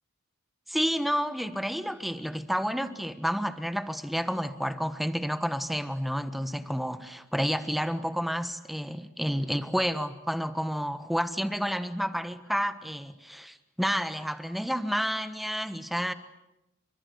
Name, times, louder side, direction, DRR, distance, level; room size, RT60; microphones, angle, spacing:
voice 1, 0.7-16.1, equal, ahead, 1.3 m, -30 dB
29.5 x 25.0 x 8.0 m
head